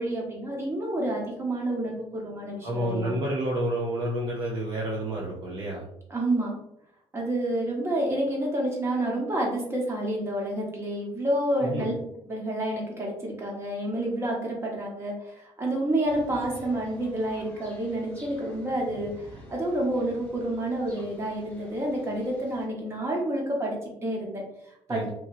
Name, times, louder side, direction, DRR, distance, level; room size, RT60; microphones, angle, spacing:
voice 1, 0.0-3.1 6.1-6.5 7.1-11.9 12.3-25.1, right 1 dB, 25° right, -2 dB, 1.1 m, -29 dB
voice 2, 2.6-5.9 11.6-11.9 24.9-25.1, right 1 dB, 45° right, -3 dB, 0.6 m, -29 dB
sound 1, 16.1-22.7, equal, 15° left, 0.9 m, -49 dB
2.9 x 2.6 x 2.6 m, 0.77 s
cardioid pair, 105°, 11 cm